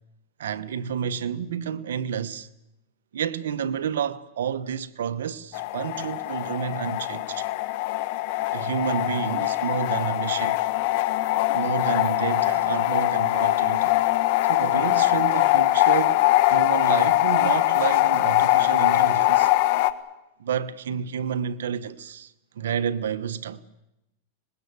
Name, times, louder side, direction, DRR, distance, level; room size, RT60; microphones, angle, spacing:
voice 1, 0.4-2.5 3.1-7.5 8.5-10.6 11.5-13.9 14.4-16.2 16.5-19.5 20.4-23.6, right 8 dB, 85° right, 1.2 m, -30 dB
sound 1, 5.5-19.9, left 17 dB, 60° left, 1.3 m, -22 dB
25.0 x 20.5 x 8.2 m
hypercardioid pair, 130°, 0 cm